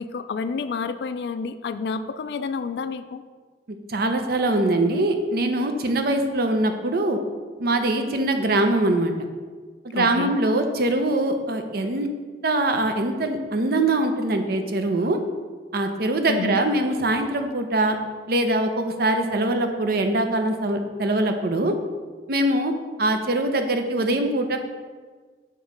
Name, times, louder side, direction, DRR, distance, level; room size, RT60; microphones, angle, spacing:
voice 1, 0.0-3.2 9.9-10.5 16.3-16.7, left 4 dB, 65° left, 12 dB, 0.3 m, -29 dB
voice 2, 3.7-7.2 7.6-9.1 9.8-12.1 12.4-15.2 15.7-18.0 18.3-21.7 22.3-22.7 23.0-24.6, right 1 dB, 55° right, 6 dB, 0.6 m, -23 dB
6.5 x 3.1 x 5.1 m, 1.5 s
head